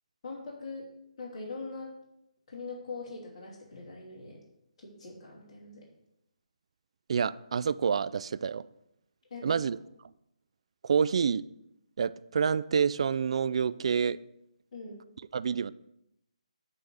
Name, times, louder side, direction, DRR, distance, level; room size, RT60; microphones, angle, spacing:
voice 1, 0.2-0.9 1.2-1.9 2.5-4.4 4.8-5.8 9.3-9.7 14.7-15.0, left 3 dB, 40° left, -5 dB, 3.0 m, -42 dB
voice 2, 7.1-8.6 9.4-9.8 10.8-11.4 12.0-14.2 15.3-15.7, right 6 dB, 55° right, 16 dB, 0.3 m, -28 dB
9.4 x 3.6 x 6.2 m, 0.80 s
figure-of-eight pair, 150°, 4 cm